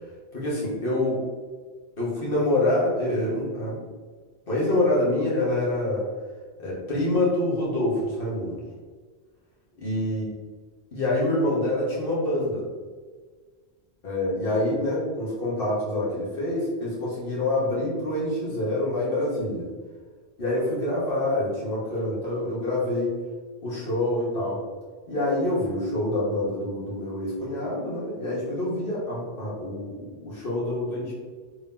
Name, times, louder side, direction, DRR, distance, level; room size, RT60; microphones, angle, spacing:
voice 1, 0.3-1.2 2.0-3.8 4.5-6.1 6.6-8.6 9.8-10.2 10.9-12.7 14.0-19.6 20.4-23.1 23.6-24.6 25.1-31.1, left 1 dB, 60° left, -6 dB, 1.5 m, -26 dB
3.3 x 2.8 x 3.5 m, 1.5 s
omnidirectional pair, 1.1 m